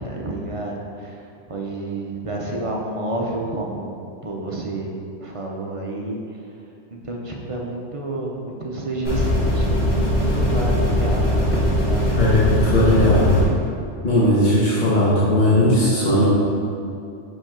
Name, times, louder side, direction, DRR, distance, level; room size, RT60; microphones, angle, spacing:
voice 1, 0.0-3.9 4.2-6.5 6.9-12.2, right 2 dB, 40° right, -1 dB, 0.5 m, -30 dB
sound 1, 9.0-13.4, equal, 85° left, 2.1 m, -20 dB
voice 2, 12.1-13.4 14.0-16.4, left 1 dB, 40° left, -9 dB, 1.2 m, -17 dB
5.5 x 5.3 x 3.6 m, 2.6 s
omnidirectional pair, 1.3 m